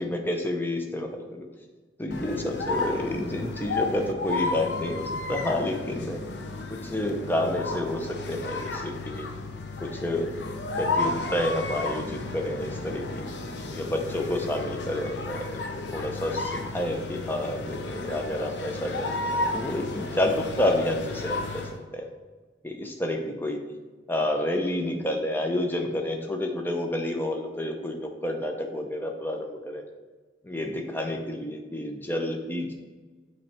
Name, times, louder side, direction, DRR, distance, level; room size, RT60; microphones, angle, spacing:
voice 1, 0.0-1.5 2.0-6.3 6.7-9.3 9.8-10.3 10.8-13.0 13.7-15.6 15.9-21.6 21.9-22.1 22.6-23.6 24.1-29.8 30.4-32.7, left 1 dB, 10° left, 2 dB, 0.6 m, -29 dB
sound 1, 2.1-21.8, left 3 dB, 80° left, 0.7 m, -33 dB
8.2 x 3.2 x 4.5 m, 1.3 s
head